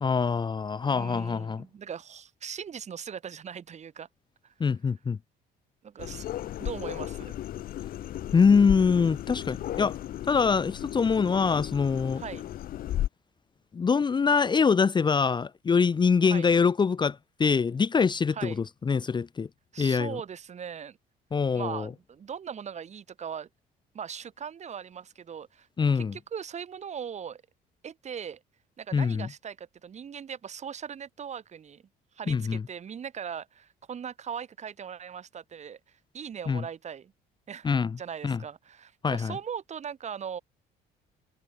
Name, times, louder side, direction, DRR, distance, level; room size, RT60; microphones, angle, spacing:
voice 1, 0.0-1.6 4.6-5.2 8.3-10.0 10.3-12.2 13.7-19.5 19.8-20.2 21.3-21.9 25.8-26.1 28.9-29.3 32.3-32.6 36.5-36.6 37.6-38.0 38.2-38.4 39.0-39.4, left 5 dB, 25° left, 1.0 m, -24 dB
voice 2, 0.9-4.1 4.4-4.5 5.8-6.2 6.6-7.3 9.6-9.7 12.2-12.5 16.3-16.5 18.3-18.6 19.7-21.0 21.5-23.5 23.9-27.4 27.8-28.4 28.8-31.8 32.1-35.8 36.1-37.1 37.5-37.7 38.0-40.4, right 7 dB, 40° right, 4.6 m, -39 dB
sound 1, 6.0-13.1, left 12 dB, 60° left, 0.9 m, -35 dB
cardioid pair, 110°, 17 cm